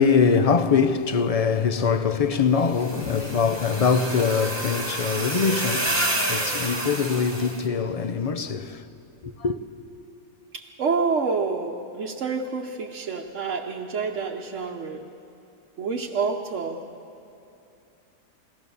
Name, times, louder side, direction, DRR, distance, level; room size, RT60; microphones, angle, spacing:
voice 1, 0.0-8.8 9.2-9.6, left 5 dB, 50° left, 0.4 m, -23 dB
sound 1, 2.7-7.6, right 1 dB, 20° right, 1.5 m, -29 dB
sound 2, 2.9-4.5, left 8 dB, 85° left, 1.3 m, -37 dB
voice 2, 10.5-15.1 15.8-16.9, right 5 dB, 60° right, 1.2 m, -28 dB
22.0 x 17.5 x 6.9 m
omnidirectional pair, 1.5 m